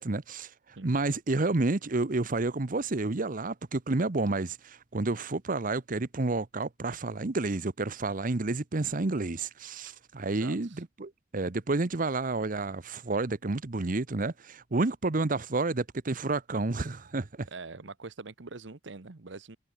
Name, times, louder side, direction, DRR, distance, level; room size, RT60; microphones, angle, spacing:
voice 1, 0.0-17.5, right 3 dB, 50° right, 0.9 m, -30 dB
voice 2, 10.4-10.8 17.5-19.6, right 3 dB, 75° right, 1.1 m, -44 dB
head